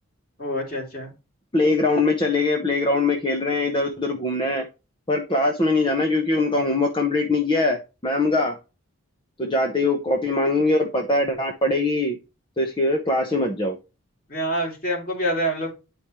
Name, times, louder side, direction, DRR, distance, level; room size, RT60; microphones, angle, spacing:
voice 1, 0.4-1.1 14.3-15.7, equal, 40° left, -1 dB, 3.4 m, -26 dB
voice 2, 1.5-4.7 5.1-8.6 9.4-12.2 12.6-13.8, left 2 dB, 20° left, 4 dB, 0.9 m, -22 dB
10.0 x 5.1 x 3.1 m, 0.29 s
head